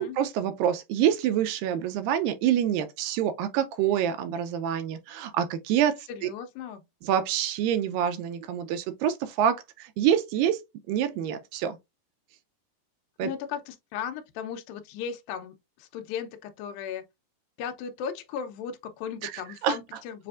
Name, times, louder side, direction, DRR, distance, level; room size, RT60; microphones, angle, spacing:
voice 1, 0.0-6.3 7.0-10.6 10.9-11.8 13.2-13.3 19.2-19.8, right 10 dB, 80° right, 2.2 m, -26 dB
voice 2, 6.1-6.8 13.2-17.0 17.6-20.3, left 8 dB, 80° left, 2.5 m, -36 dB
7.4 x 2.5 x 2.4 m
omnidirectional pair, 4.2 m